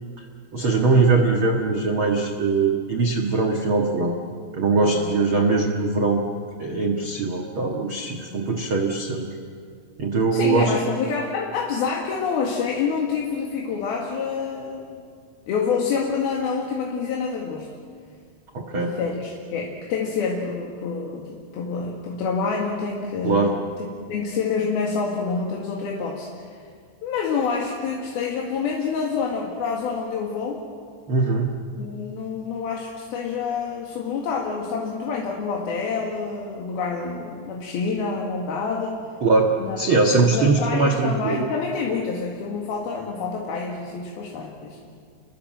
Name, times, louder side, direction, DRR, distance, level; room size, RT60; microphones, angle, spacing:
voice 1, 0.5-4.2 4.5-6.2 6.6-9.3 10.0-10.7 18.5-19.0 23.2-23.5 31.1-31.5 39.2-39.5 39.8-41.5, right 3 dB, 80° right, 2 dB, 1.1 m, -21 dB
voice 2, 4.8-5.1 10.3-15.0 15.5-17.7 18.7-23.6 24.1-26.6 27.0-30.6 31.8-39.0 39.6-39.8 40.0-44.8, left 5 dB, 60° left, -1 dB, 3.5 m, -27 dB
29.5 x 21.5 x 7.6 m, 2.2 s
omnidirectional pair, 5.2 m